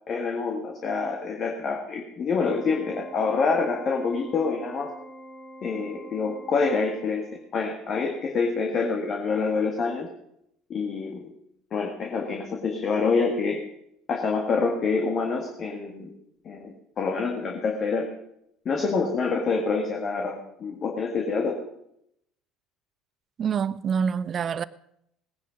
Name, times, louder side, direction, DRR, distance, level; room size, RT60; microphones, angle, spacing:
voice 1, 0.1-4.9 5.6-7.3 7.5-10.1 10.7-11.3 11.7-13.6 14.1-16.1 16.5-18.1 18.7-21.6, left 4 dB, 40° left, 1.9 m, -26 dB
Organ, 2.3-7.4, equal, 25° left, 3.9 m, -45 dB
voice 2, 23.4-24.6, right 7 dB, 40° right, 0.6 m, -26 dB
18.5 x 10.5 x 5.3 m
figure-of-eight pair, 60°, 0 cm